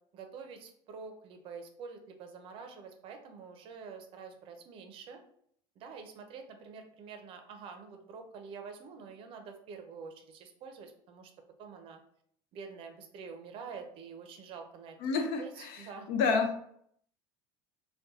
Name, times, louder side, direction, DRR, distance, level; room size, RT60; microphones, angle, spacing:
voice 1, 0.1-5.2 5.8-11.3 11.6-12.0 12.5-15.0 15.4-16.1, right 5 dB, 45° right, 5 dB, 0.5 m, -47 dB
voice 2, 15.0-15.8 16.1-16.6, left 5 dB, 70° left, 4 dB, 0.6 m, -29 dB
2.7 x 2.2 x 3.5 m, 0.67 s
supercardioid pair, 140°, 13 cm